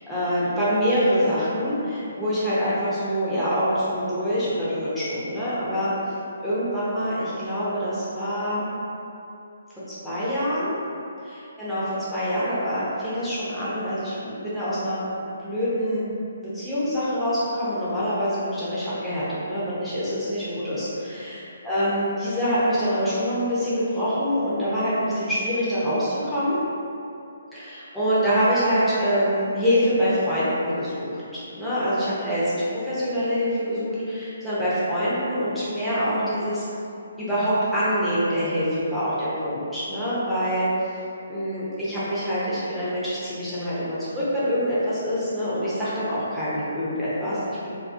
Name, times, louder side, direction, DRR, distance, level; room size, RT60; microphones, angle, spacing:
voice 1, 0.1-5.9 6.4-8.7 9.9-10.7 11.2-11.8 12.1-16.1 16.4-26.6 27.5-36.6 37.2-40.7 41.3-47.7, equal, ahead, -14 dB, 0.6 m, -25 dB
2.4 x 2.3 x 2.4 m, 2.7 s
hypercardioid pair, 150°, 0 cm